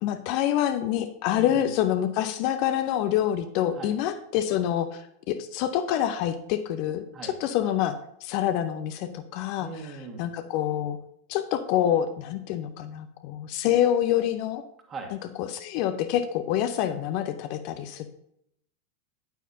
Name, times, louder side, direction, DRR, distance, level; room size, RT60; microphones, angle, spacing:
voice 1, 0.0-8.0 8.2-9.7 10.2-11.0 11.3-14.6 15.4-18.1, left 11 dB, 45° left, 9 dB, 0.6 m, -26 dB
voice 2, 1.3-1.7 3.7-4.0 7.1-7.4 9.6-10.3 14.9-15.2, right 4 dB, 25° right, 3 dB, 1.8 m, -39 dB
9.2 x 9.1 x 2.8 m, 0.74 s
figure-of-eight pair, 90°, 0 cm